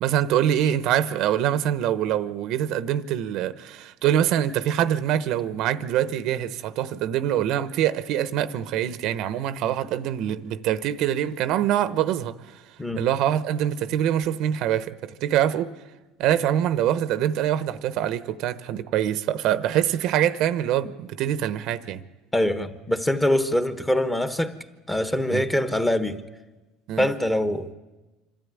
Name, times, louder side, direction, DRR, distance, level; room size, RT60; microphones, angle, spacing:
voice 1, 0.0-12.6 13.0-15.7 16.2-22.0 25.3-25.4 26.9-27.1, right 11 dB, 65° right, 0.9 m, -24 dB
voice 2, 22.3-24.5 24.9-26.2 27.0-27.8, left 1 dB, 10° left, 1.3 m, -24 dB
25.5 x 12.5 x 9.6 m
supercardioid pair, 115°, 0 cm